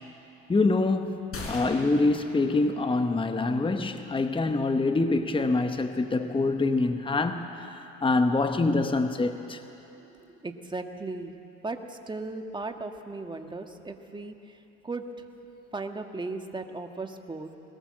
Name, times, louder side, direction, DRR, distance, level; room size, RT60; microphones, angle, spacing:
voice 1, 0.5-7.7 8.0-9.6, left 3 dB, 15° left, 8 dB, 1.1 m, -25 dB
sound 1, 1.3-3.2, left 2 dB, 45° left, 4.9 m, -41 dB
voice 2, 10.4-11.3 11.6-14.6 14.8-15.2 15.7-17.5, right 3 dB, 15° right, 5 dB, 1.6 m, -36 dB
21.0 x 18.0 x 7.6 m, 2.9 s
supercardioid pair, 85°, 31 cm